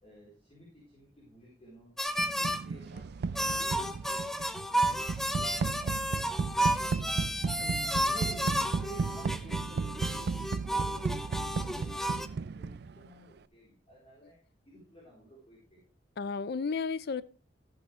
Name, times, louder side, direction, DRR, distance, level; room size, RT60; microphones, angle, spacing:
voice 1, 0.0-2.0 2.4-7.2 8.0-14.4 14.7-15.8, right 1 dB, 35° left, 4.2 m, -52 dB
sound 1, 2.0-2.6 3.4-12.3, equal, ahead, 0.6 m, -32 dB
sound 2, 2.2-13.1, right 4 dB, 60° right, 0.4 m, -35 dB
voice 2, 7.6-8.1 14.2-14.3 16.2-17.2, left 5 dB, 60° left, 0.5 m, -34 dB
14.0 x 8.0 x 3.2 m
head